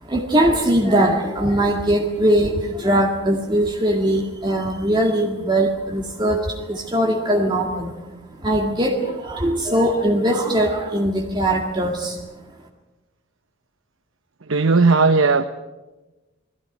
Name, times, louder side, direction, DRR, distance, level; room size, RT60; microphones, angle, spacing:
voice 1, 0.0-7.9 8.4-12.2, right 1 dB, 20° right, 2.0 m, -20 dB
voice 2, 14.5-15.4, right 4 dB, 85° right, 0.9 m, -16 dB
22.5 x 15.5 x 9.6 m
head